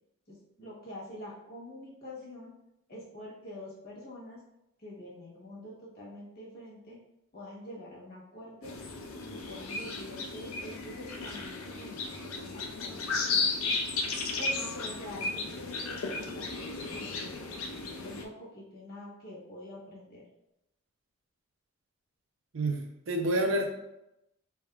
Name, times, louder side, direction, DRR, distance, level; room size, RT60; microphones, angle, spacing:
voice 1, 0.3-2.5 2.9-4.4 4.8-7.0 7.3-8.8 9.3-13.4 14.4-17.4 18.0-20.2, left 1 dB, 45° left, -5 dB, 1.3 m, -46 dB
sound 1, 8.6-18.2, left 3 dB, 80° left, 0.5 m, -34 dB
voice 2, 22.5-23.7, right 1 dB, 65° right, 2 dB, 0.6 m, -28 dB
4.2 x 3.5 x 2.3 m, 0.87 s
head